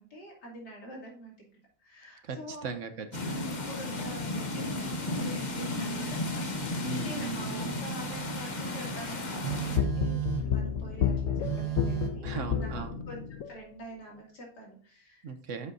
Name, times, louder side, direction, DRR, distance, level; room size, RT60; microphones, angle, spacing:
voice 1, 0.0-1.3 1.8-2.7 3.5-15.3, equal, 85° left, -1 dB, 3.3 m, -46 dB
voice 2, 2.2-3.5 6.8-7.8 12.2-13.0 15.2-15.7, right 5 dB, 55° right, 9 dB, 1.1 m, -38 dB
thunder with steady rain, 3.1-9.8, left 2 dB, 30° left, 0.9 m, -34 dB
Telephone, 6.2-6.5 7.4-8.5 9.4-10.6 11.4-12.1, right 16 dB, 75° right, 1.9 m, -35 dB
sound 1, 9.5-13.6, left 8 dB, 60° left, 1.0 m, -30 dB
10.0 x 7.4 x 2.7 m, 0.43 s
omnidirectional pair, 1.7 m